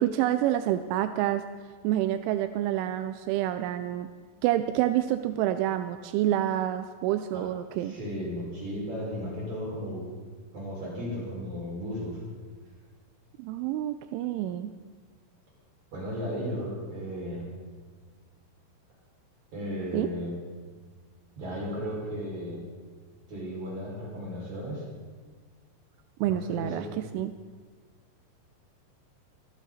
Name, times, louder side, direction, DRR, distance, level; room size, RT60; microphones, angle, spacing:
voice 1, 0.0-1.5 1.8-4.1 4.4-7.9 13.4-14.7 19.9-20.1 26.2-27.3, right 12 dB, 85° right, 10 dB, 2.7 m, -28 dB
voice 2, 7.8-10.1 10.5-12.2 15.9-17.4 19.5-20.3 21.4-22.6 23.3-24.9 26.2-26.9, equal, 35° right, -5 dB, 6.9 m, -35 dB
24.0 x 12.0 x 4.2 m, 1.5 s
omnidirectional pair, 6.0 m